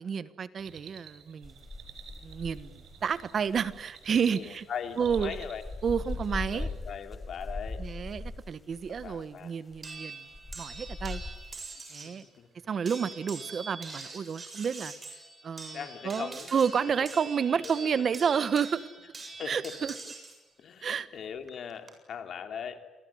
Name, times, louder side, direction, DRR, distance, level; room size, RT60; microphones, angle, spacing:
voice 1, 0.0-1.5 2.2-4.7 5.0-5.3 5.8-6.7 7.8-10.2 10.6-11.2 11.9-12.2 12.7-14.9 15.4-15.8 16.0-18.8 19.5-19.9 20.8-21.1, right 7 dB, 50° right, 15 dB, 1.3 m, -30 dB
sound 1, 0.6-6.9, right 8 dB, 85° right, 4.5 m, -52 dB
sound 2, 1.4-3.9 5.0-9.2 9.7-10.0 10.3-11.6, left 2 dB, 15° left, 4.9 m, -40 dB
voice 2, 4.3-5.6 6.5-7.8 9.0-9.5 12.0-12.1 12.4-12.5 15.7-16.9 17.6-17.9 19.4-19.8 20.6-22.9, left 7 dB, 60° left, 7 dB, 3.1 m, -40 dB
sound 3, 9.8-12.2 12.8-20.4 21.5-21.9, right 3 dB, 30° right, 7.5 m, -44 dB
27.5 x 20.5 x 10.0 m, 1.1 s
cardioid pair, 90°, 0 cm